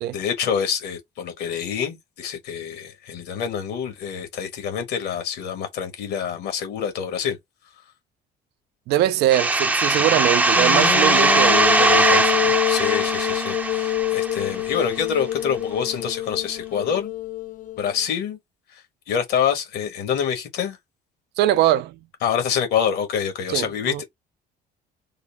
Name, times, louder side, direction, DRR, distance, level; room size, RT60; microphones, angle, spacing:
voice 1, 0.1-7.4 10.1-10.2 12.7-17.1 17.8-18.4 18.7-18.8 19.1-20.8 22.2-24.0, left 8 dB, 75° left, 1.3 m, -26 dB
voice 2, 8.9-12.5 21.4-22.0 23.5-24.0, right 13 dB, 75° right, 0.4 m, -22 dB
sound 1, 9.3-14.8, right 2 dB, 10° right, 0.5 m, -20 dB
sound 2, 10.6-17.9, left 14 dB, 50° left, 0.4 m, -26 dB
3.8 x 2.1 x 3.3 m
cardioid pair, 110°, 17 cm